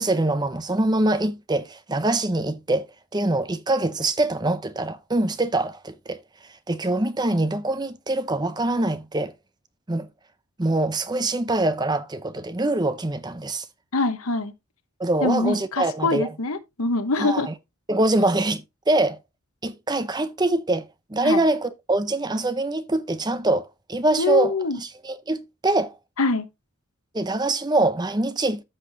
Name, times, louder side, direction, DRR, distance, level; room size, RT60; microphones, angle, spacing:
voice 1, 0.0-2.9 3.1-6.2 6.7-9.3 9.9-10.1 10.6-13.6 15.0-16.3 17.2-17.5 17.9-19.2 19.6-20.9 21.1-25.9 27.1-28.6, right 2 dB, 20° right, 0.7 m, -24 dB
voice 2, 13.9-14.5 15.2-17.5 21.2-21.4 24.2-24.8 26.2-26.5, left 3 dB, 75° left, 1.1 m, -24 dB
13.5 x 5.8 x 2.7 m
head